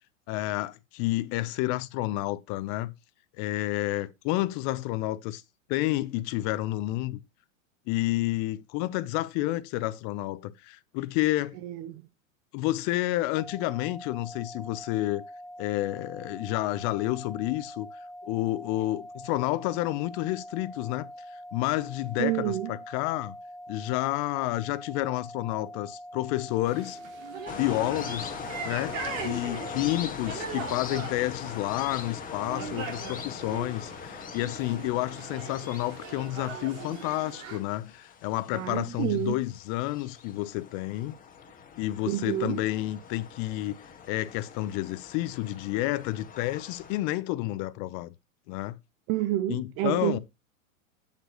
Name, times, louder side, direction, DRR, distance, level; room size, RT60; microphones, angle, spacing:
voice 1, 0.3-2.9 3.4-5.4 5.7-7.2 7.9-11.6 12.5-15.2 15.6-17.9 18.2-21.1 21.5-23.4 23.7-27.0 27.5-28.3 28.6-28.9 29.2-41.1 41.8-43.7 44.1-48.1 48.5-48.8 49.5-50.2, left 17 dB, 40° left, 0.9 m, -30 dB
voice 2, 11.6-12.0 22.2-22.7 38.5-39.4 42.1-42.6 49.1-50.2, right 14 dB, 35° right, 0.6 m, -29 dB
sound 1, 13.4-30.0, equal, 5° left, 0.5 m, -44 dB
sound 2, 26.7-37.6, right 5 dB, 70° right, 3.9 m, -40 dB
sound 3, 27.5-47.0, left 6 dB, 20° left, 1.7 m, -42 dB
8.8 x 7.9 x 3.1 m
hypercardioid pair, 110°, 41 cm